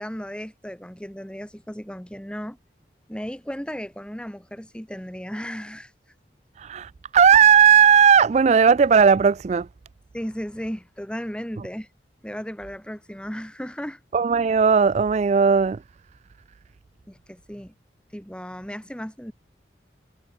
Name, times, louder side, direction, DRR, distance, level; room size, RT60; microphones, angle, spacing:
voice 1, 0.0-2.6 3.1-5.9 10.1-11.9 12.2-14.0 17.1-17.7 18.1-19.3, equal, 5° left, 1.8 m, -35 dB
voice 2, 6.6-9.7 14.1-15.8, right 7 dB, 40° right, 0.3 m, -16 dB
head